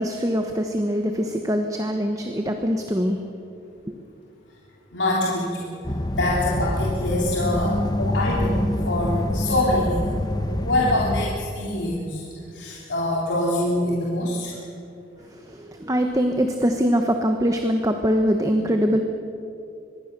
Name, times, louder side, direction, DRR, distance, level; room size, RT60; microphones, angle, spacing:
voice 1, 0.0-3.2 3.9-4.0 15.2-19.0, equal, 20° right, 5 dB, 1.1 m, -23 dB
voice 2, 4.9-5.7 6.1-10.2 10.6-12.2 12.5-14.6, left 1 dB, 85° left, -4 dB, 3.3 m, -25 dB
sound 1, 5.8-11.3, left 1 dB, 20° left, 1.0 m, -26 dB
25.0 x 21.5 x 6.8 m, 2.7 s
head